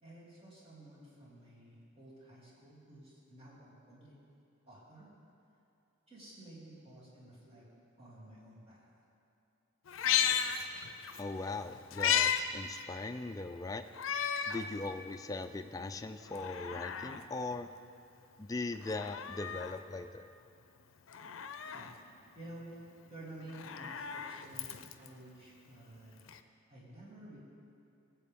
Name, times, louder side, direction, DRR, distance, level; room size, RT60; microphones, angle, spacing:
voice 1, 0.0-4.2 4.7-5.1 6.1-7.7 8.0-8.9 21.6-22.0 22.3-22.8 23.1-26.2 26.7-27.4, right 1 dB, 30° right, -8 dB, 3.0 m, -52 dB
Meow, 9.9-11.2 11.6-12.4 12.8-12.9 13.9-14.6 15.1-15.2 16.2-17.2 18.8-19.7 21.1-21.9 23.4-25.1 26.3-26.4, left 8 dB, 75° left, 0.5 m, -34 dB
voice 2, 11.2-13.8 14.1-17.7 18.4-20.3, left 3 dB, 15° left, 7 dB, 0.3 m, -40 dB
18.0 x 7.6 x 3.6 m, 2.8 s
head